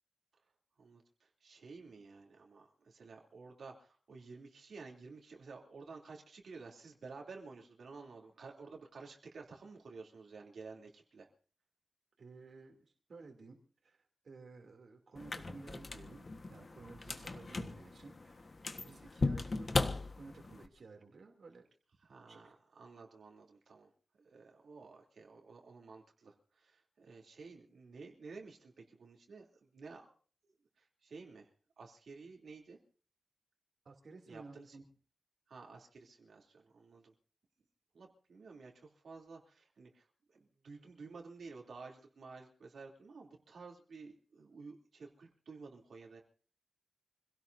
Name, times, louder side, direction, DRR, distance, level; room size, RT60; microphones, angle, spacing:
voice 1, 0.8-11.3 22.0-23.9 24.2-30.1 30.4-32.8 34.3-34.8 35.5-37.1 37.9-40.1 40.3-46.2, right 4 dB, 80° right, 0 dB, 3.1 m, -53 dB
voice 2, 12.2-13.6 13.8-18.5 18.8-19.9 20.1-21.6 22.3-22.5 33.8-34.8, right 3 dB, 60° right, 2 dB, 3.0 m, -54 dB
sound 1, 15.2-20.7, left 3 dB, 35° left, 1.4 m, -38 dB
26.5 x 17.5 x 2.7 m, 0.42 s
wide cardioid pair, 165°, 0 cm